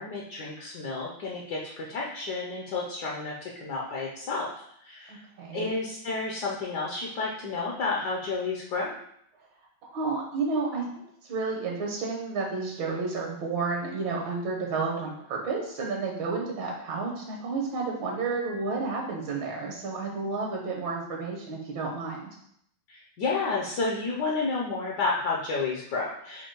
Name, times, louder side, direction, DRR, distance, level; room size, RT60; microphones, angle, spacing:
voice 1, 0.0-4.5 4.8-5.2 5.5-8.9 22.9-26.5, left 3 dB, 65° left, -3 dB, 1.1 m, -31 dB
voice 2, 5.1-5.7 9.9-10.9 11.3-22.3, right 4 dB, 75° right, -1 dB, 1.5 m, -31 dB
4.5 x 2.6 x 4.4 m, 0.71 s
omnidirectional pair, 2.2 m